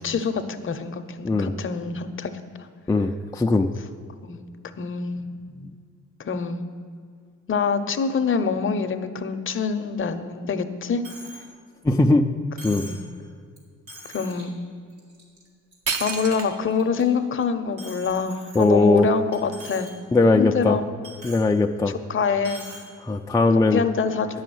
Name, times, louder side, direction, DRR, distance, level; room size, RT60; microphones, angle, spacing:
voice 1, 0.0-2.3 4.2-4.4 4.8-5.2 6.2-6.6 7.5-11.0 12.7-13.0 14.1-14.5 16.0-19.9 20.3-20.8 21.9-22.7 23.7-24.3, left 6 dB, 40° left, 9 dB, 0.7 m, -25 dB
voice 2, 2.9-3.7 5.6-5.7 11.8-12.2 12.6-12.9 18.5-19.1 20.1-20.8 21.2-22.0 23.0-23.8, left 2 dB, 10° left, 3 dB, 0.4 m, -19 dB
Coin (dropping), 11.0-11.5 11.8-11.9 12.6-13.0 13.6-13.7 13.9-14.4 14.9-15.4 15.7-16.4 16.8-17.0 17.8-19.0 19.3-19.9 20.2-20.3 21.0-21.5 22.4-22.9, right 1 dB, 80° right, 2.9 m, -42 dB
sound 1, 15.5-15.6 15.9-16.8 17.4-17.5 18.1-19.4, right 5 dB, 55° right, 0.9 m, -32 dB
9.8 x 6.4 x 7.7 m, 2.2 s
cardioid pair, 90°, 30 cm